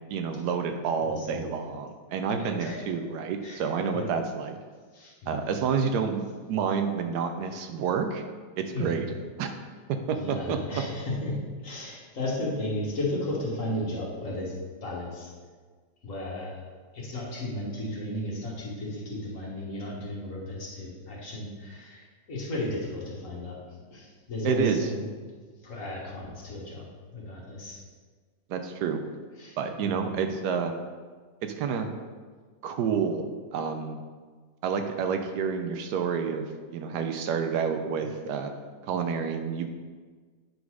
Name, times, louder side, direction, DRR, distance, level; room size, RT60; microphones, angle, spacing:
voice 1, 0.1-4.6 5.3-6.2 6.5-8.2 8.6-9.1 9.4-9.5 9.9-10.8 24.4-24.8 28.5-29.0 29.6-30.7 31.4-31.9 32.6-33.2 33.5-34.0 34.6-36.5 36.7-38.5 38.8-39.7, right 6 dB, 75° right, 6 dB, 1.2 m, -29 dB
voice 2, 1.0-1.5 2.3-2.8 3.4-3.6 3.9-4.1 4.9-5.5 8.7-9.0 10.1-14.5 14.8-15.3 16.0-16.6 16.9-23.6 23.9-25.3 25.6-26.9 27.1-27.8 29.4-30.0 38.0-38.1, left 1 dB, 50° left, -4 dB, 1.8 m, -34 dB
8.2 x 4.0 x 4.8 m, 1.5 s
omnidirectional pair, 1.8 m